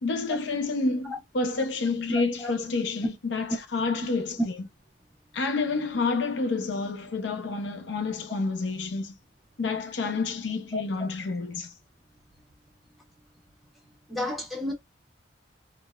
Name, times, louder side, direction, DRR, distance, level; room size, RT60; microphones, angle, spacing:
voice 1, 0.0-4.5 5.3-9.1 9.6-11.7, left 3 dB, 80° left, 0.6 m, -29 dB
voice 2, 2.1-2.5 10.7-10.8 14.1-14.7, left 1 dB, ahead, 1.2 m, -32 dB
3.6 x 2.0 x 2.3 m
head